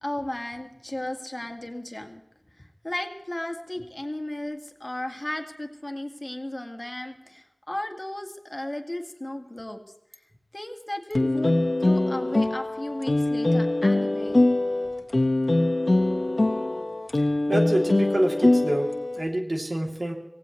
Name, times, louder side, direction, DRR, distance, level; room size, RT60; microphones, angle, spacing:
voice 1, 0.0-2.2 2.5-9.8 10.5-14.5, left 1 dB, 35° left, 4 dB, 1.9 m, -35 dB
sound 1, 11.1-19.2, left 2 dB, 65° left, 1.3 m, -23 dB
voice 2, 17.5-18.9 19.2-20.1, right 1 dB, 70° right, 1 dB, 2.8 m, -26 dB
25.0 x 17.5 x 3.2 m, 0.88 s
wide cardioid pair, 40°, 0 cm